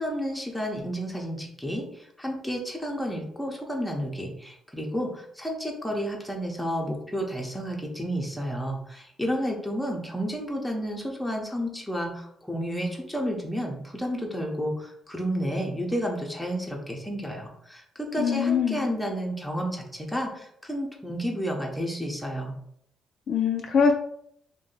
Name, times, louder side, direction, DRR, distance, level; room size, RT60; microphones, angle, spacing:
voice 1, 0.0-22.5, equal, 5° left, 0 dB, 0.7 m, -31 dB
voice 2, 18.2-18.8 23.3-23.9, left 6 dB, 55° left, 3 dB, 0.3 m, -22 dB
2.6 x 2.2 x 3.9 m, 0.71 s
cardioid pair, 90°, 0 cm